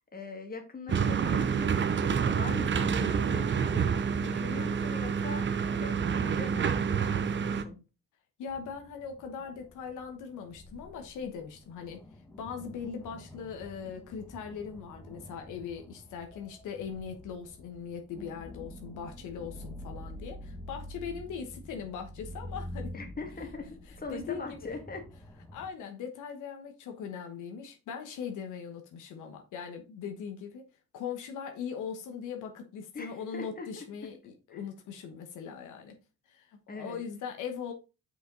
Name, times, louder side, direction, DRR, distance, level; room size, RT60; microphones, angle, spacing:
voice 1, 0.1-3.9 4.2-7.8 22.9-25.1 32.9-33.9 34.5-34.6 36.7-37.0, left 3 dB, 30° left, 1.9 m, -42 dB
sound 1, 0.9-7.6, right 6 dB, 40° right, 0.8 m, -28 dB
voice 2, 8.4-12.0 12.4-22.9 24.1-24.6 25.5-30.7 30.9-36.0 36.3-37.7, left 7 dB, 85° left, 1.2 m, -40 dB
sound 2, 8.5-25.7, left 1 dB, 10° left, 1.3 m, -47 dB
6.5 x 5.1 x 3.8 m
cardioid pair, 90°, 30 cm